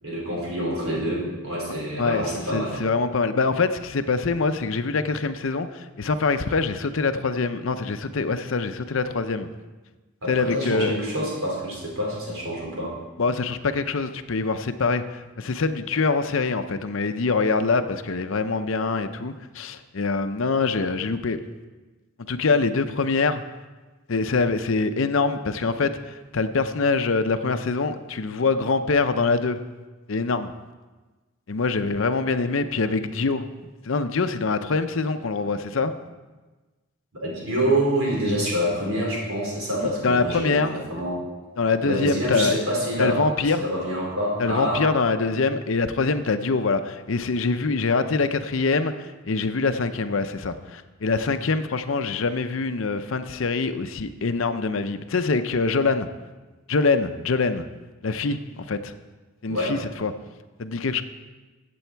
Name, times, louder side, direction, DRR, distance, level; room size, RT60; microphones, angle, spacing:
voice 1, 0.0-2.7 10.2-12.9 37.2-40.6 40.9-41.2 41.8-43.2 43.6-44.8 59.5-59.7, equal, 70° right, -4 dB, 4.4 m, -26 dB
voice 2, 1.7-9.5 10.3-11.0 13.2-21.4 22.3-23.4 24.1-29.6 30.1-30.5 31.5-33.5 33.8-35.9 39.8-40.8 41.6-42.6 43.0-43.6 44.4-56.1 56.7-57.6 58.0-58.9 59.4-60.1 60.6-61.0, left 4 dB, 65° left, 9 dB, 0.6 m, -24 dB
15.5 x 7.8 x 4.6 m, 1.3 s
head